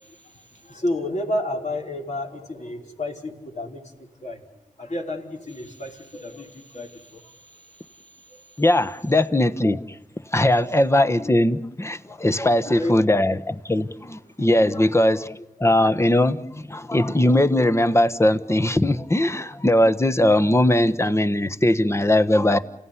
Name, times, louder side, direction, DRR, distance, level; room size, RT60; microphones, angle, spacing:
voice 1, 0.0-4.4 4.8-7.3 12.5-13.2 14.6-14.8, left 1 dB, 55° left, 1 dB, 5.2 m, -31 dB
voice 2, 8.6-10.0 10.3-22.6, left 1 dB, 20° left, 11 dB, 1.3 m, -20 dB
29.0 x 16.5 x 9.8 m, 0.97 s
cardioid pair, 50°, 15 cm